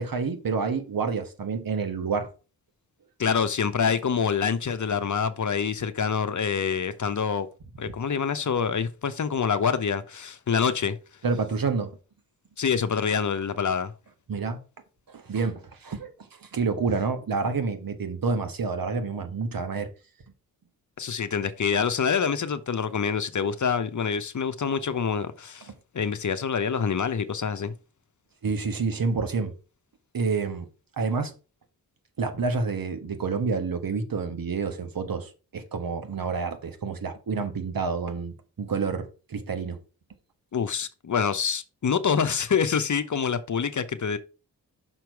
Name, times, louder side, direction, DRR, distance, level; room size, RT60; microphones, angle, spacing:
voice 1, 0.0-2.3 11.2-12.0 14.3-14.6 15.1-16.1 16.4-19.9 28.4-29.5 30.1-30.7 31.0-31.3 32.2-39.8, right 4 dB, 55° right, 1.5 m, -28 dB
voice 2, 3.2-7.5 7.8-11.0 12.6-13.9 21.0-25.7 25.9-27.7 40.5-44.2, left 6 dB, 45° left, 0.9 m, -26 dB
6.2 x 4.5 x 4.7 m
supercardioid pair, 45°, 40 cm